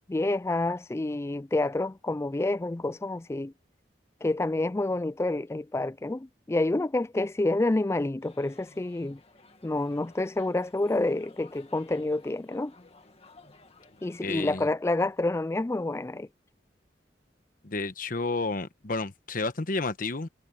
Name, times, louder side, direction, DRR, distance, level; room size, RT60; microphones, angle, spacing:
voice 1, 0.1-3.5 4.2-9.2 9.6-12.7 14.0-16.3, left 2 dB, 15° left, 0.3 m, -28 dB
sound 1, 8.2-14.7, left 3 dB, 35° left, 2.1 m, -56 dB
voice 2, 14.2-14.7 17.6-20.3, left 3 dB, 50° left, 1.1 m, -31 dB
head